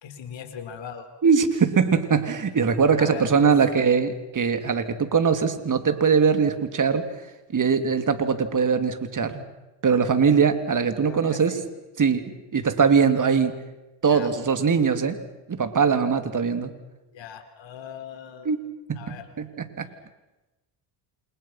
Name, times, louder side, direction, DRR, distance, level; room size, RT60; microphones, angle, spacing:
voice 1, 0.0-1.1 1.6-1.7 3.0-3.5 11.0-11.6 14.1-14.3 17.1-18.5 18.9-19.3, left 8 dB, 60° left, 7 dB, 4.5 m, -39 dB
voice 2, 1.2-7.1 7.5-9.4 9.8-11.6 12.0-13.5 14.0-15.2 15.5-16.7 18.5-18.6 18.9-19.9, right 6 dB, 40° right, 9 dB, 3.4 m, -21 dB
28.5 x 28.0 x 6.1 m, 1.0 s
supercardioid pair, 80°, 50 cm